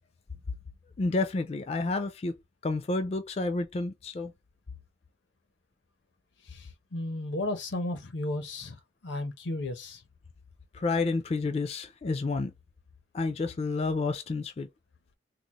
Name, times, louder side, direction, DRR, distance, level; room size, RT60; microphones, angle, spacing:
voice 1, 1.0-2.4 2.6-4.3 10.7-12.5 13.1-14.7, left 3 dB, 35° left, 0.3 m, -30 dB
voice 2, 6.9-8.8 9.0-10.0, left 1 dB, 85° left, 0.7 m, -33 dB
3.9 x 2.0 x 2.9 m
head